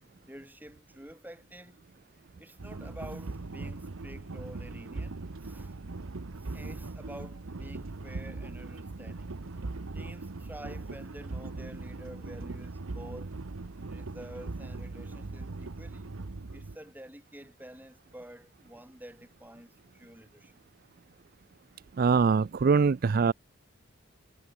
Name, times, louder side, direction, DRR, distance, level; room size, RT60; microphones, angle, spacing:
voice 1, 0.2-1.8 2.4-5.8 6.4-9.3 9.6-9.7 9.9-13.4 13.9-16.1 16.5-20.5, right 1 dB, 10° right, 6.4 m, -48 dB
sound 1, 2.6-16.8, right 3 dB, 75° right, 0.9 m, -40 dB
voice 2, 22.0-23.3, right 5 dB, 45° right, 0.4 m, -23 dB
head